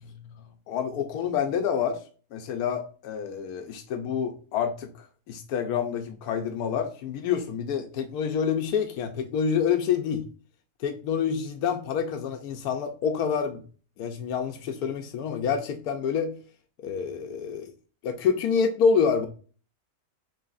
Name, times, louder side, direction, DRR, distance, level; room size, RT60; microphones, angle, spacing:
voice 1, 0.7-2.0 2.3-10.2 10.8-13.6 14.0-16.3 16.8-17.7 18.0-19.3, left 7 dB, 90° left, 1.2 m, -27 dB
6.5 x 3.4 x 2.4 m
omnidirectional pair, 1.6 m